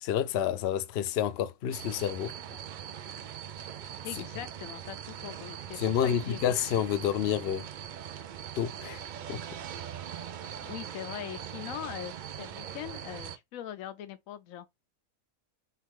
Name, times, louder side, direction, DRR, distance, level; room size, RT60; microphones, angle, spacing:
voice 1, 0.0-2.3 5.8-7.7 8.6-9.0 9.3-9.4, left 9 dB, 60° left, 0.7 m, -29 dB
sound 1, 1.7-13.4, right 9 dB, 75° right, 0.4 m, -41 dB
voice 2, 4.0-6.5 10.6-14.7, left 11 dB, 85° left, 1.0 m, -41 dB
5.6 x 2.4 x 3.6 m
omnidirectional pair, 1.4 m